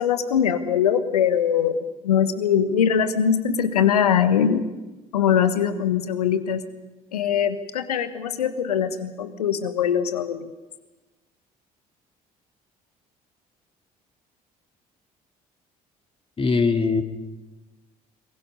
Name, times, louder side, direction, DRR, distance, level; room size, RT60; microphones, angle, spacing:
voice 1, 0.0-4.7 5.1-6.6 7.1-10.5, left 8 dB, 80° left, 11 dB, 1.4 m, -22 dB
voice 2, 16.4-17.0, left 4 dB, 30° left, 4 dB, 3.0 m, -21 dB
29.5 x 21.5 x 5.5 m, 1.1 s
figure-of-eight pair, 55°, 20 cm